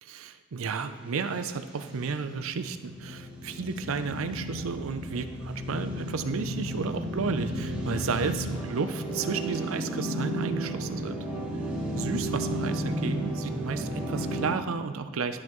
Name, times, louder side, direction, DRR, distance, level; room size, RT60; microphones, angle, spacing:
voice 1, 0.0-11.3 11.9-15.4, right 5 dB, 75° right, 10 dB, 0.5 m, -32 dB
sound 1, 1.2-14.5, equal, 5° right, 1.7 m, -33 dB
11.0 x 5.7 x 3.1 m, 1.5 s
head